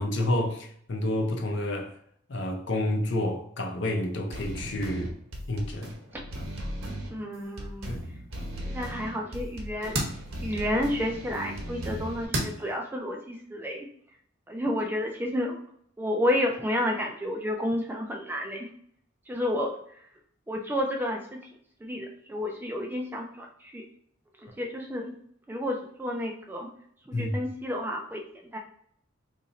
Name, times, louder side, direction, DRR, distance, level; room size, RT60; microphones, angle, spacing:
voice 1, 0.0-1.9 2.3-5.1 5.5-5.9 7.9-8.0 27.1-27.4, left 1 dB, 55° left, 0.6 m, -29 dB
sound 1, 4.3-12.3, equal, 85° right, 1.0 m, -37 dB
voice 2, 7.1-7.9 8.6-10.0 10.4-13.9 14.5-15.6 16.0-18.7 19.3-20.0 20.5-21.4 21.8-23.8 24.4-25.1 25.5-26.7 27.1-28.6, left 1 dB, 10° right, 0.3 m, -31 dB
sound 2, 7.2-12.8, right 1 dB, 55° right, 0.8 m, -37 dB
2.9 x 2.5 x 4.0 m
head